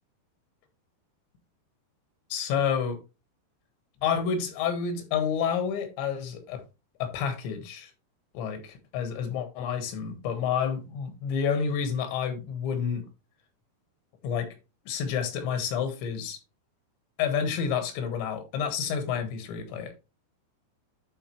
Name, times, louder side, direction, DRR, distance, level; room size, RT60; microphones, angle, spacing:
voice 1, 2.3-3.0 4.0-6.6 7.0-7.9 8.4-13.1 14.2-14.5 14.9-16.4 17.2-19.9, left 7 dB, 90° left, 3.8 m, -29 dB
11.5 x 4.6 x 3.1 m
omnidirectional pair, 5.0 m